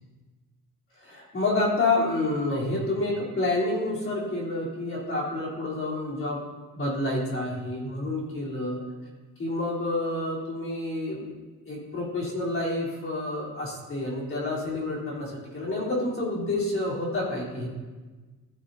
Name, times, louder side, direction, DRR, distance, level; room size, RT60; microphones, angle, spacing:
voice 1, 1.0-6.4 6.7-8.8 9.4-11.4 11.7-17.7, left 2 dB, 35° left, -5 dB, 3.8 m, -28 dB
14.5 x 10.0 x 2.8 m, 1.3 s
cardioid pair, 150°, 38 cm